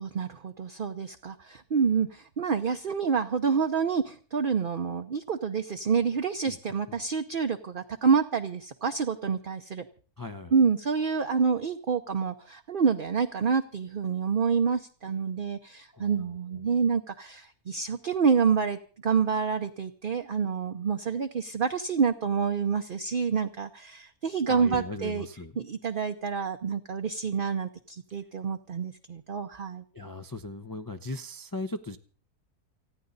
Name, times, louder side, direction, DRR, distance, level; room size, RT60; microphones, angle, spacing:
voice 1, 0.0-9.9 10.5-25.3 25.6-29.8, right 6 dB, 45° right, 6 dB, 0.8 m, -28 dB
voice 2, 10.2-10.5 15.9-16.6 24.5-25.5 29.9-32.0, left 2 dB, 20° left, 7 dB, 0.5 m, -38 dB
29.5 x 10.0 x 4.0 m, 0.41 s
omnidirectional pair, 1.6 m